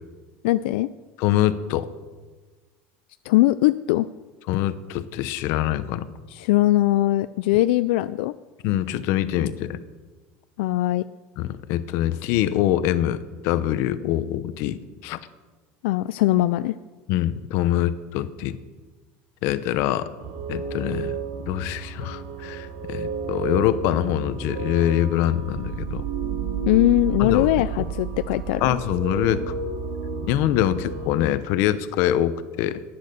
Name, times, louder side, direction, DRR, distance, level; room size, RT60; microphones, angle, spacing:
voice 1, 0.4-0.9 3.2-4.1 6.3-8.3 10.6-11.0 15.8-16.7 26.7-28.6, left 16 dB, 75° left, 12 dB, 0.4 m, -20 dB
voice 2, 1.2-1.9 4.5-6.1 8.6-9.8 11.4-15.2 17.1-18.6 19.4-20.1 20.5-21.2 21.5-26.0 27.2-27.5 28.6-29.5 30.3-32.8, left 12 dB, 50° left, 13 dB, 0.8 m, -24 dB
sound 1, 20.2-31.2, right 6 dB, 70° right, 2.2 m, -31 dB
14.5 x 10.5 x 6.7 m, 1.3 s
cardioid pair, 175°, 6 cm